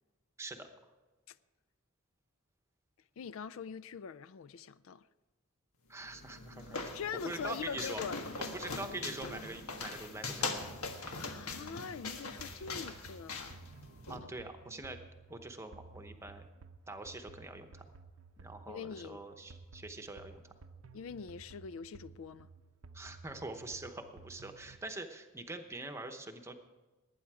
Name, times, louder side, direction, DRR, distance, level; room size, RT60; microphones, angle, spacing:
voice 1, 3.2-5.1 6.9-8.2 11.2-13.6 14.7-14.8 18.7-19.2 20.9-22.5, left 6 dB, 70° left, 0.4 m, -43 dB
voice 2, 5.9-6.9 7.2-8.0 8.5-10.6 14.1-15.0 15.3-16.4 16.9-17.8 18.4-20.5 22.9-26.5, right 2 dB, 10° right, 0.9 m, -44 dB
sound 1, 6.0-14.2, left 3 dB, 85° left, 1.5 m, -41 dB
sound 2, 10.6-24.8, right 3 dB, 70° right, 0.6 m, -55 dB
19.5 x 9.3 x 4.8 m
head